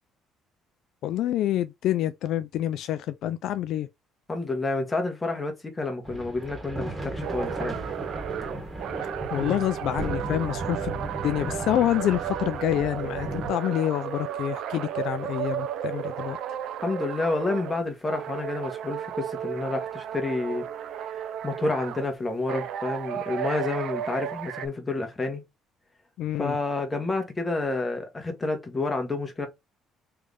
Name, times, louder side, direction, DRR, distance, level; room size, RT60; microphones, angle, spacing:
voice 1, 1.0-3.9 9.3-16.4 26.2-26.6, left 12 dB, 70° left, 0.3 m, -27 dB
voice 2, 4.3-7.8 16.8-20.6 21.1-25.4 26.4-29.5, left 3 dB, 15° left, 1.2 m, -29 dB
sound 1, 6.0-13.5, right 2 dB, 15° right, 1.7 m, -35 dB
sound 2, 7.2-17.8 18.0-22.1 22.5-24.7, right 10 dB, 65° right, 0.5 m, -34 dB
3.3 x 3.3 x 3.8 m
cardioid pair, 135°, 0 cm